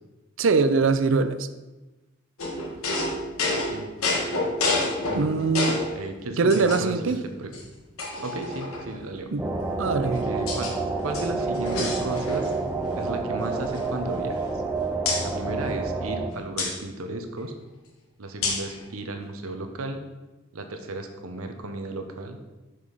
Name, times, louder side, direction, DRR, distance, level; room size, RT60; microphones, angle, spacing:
voice 1, 0.4-1.5 5.1-5.8 6.4-7.2 9.3-9.4 9.8-10.3, right 4 dB, 60° right, 10 dB, 0.5 m, -22 dB
sound 1, 2.4-6.0 6.5-7.1 7.5-7.6 8.0-9.0 9.8-10.7 11.0-12.6 12.9-13.1 13.4-14.7 15.1-15.3 16.6-16.8 18.4-18.8, left 2 dB, 85° left, 1.4 m, -29 dB
voice 2, 5.0-5.4 5.9-7.5 8.2-9.3 10.2-10.7 11.0-12.5 12.9-14.6 15.2-17.5 18.2-20.0 20.5-22.4, right 2 dB, 85° right, 6 dB, 0.9 m, -34 dB
sound 2, 9.4-16.3, right 3 dB, 5° right, 0.5 m, -28 dB
6.1 x 5.0 x 5.4 m, 1.1 s
head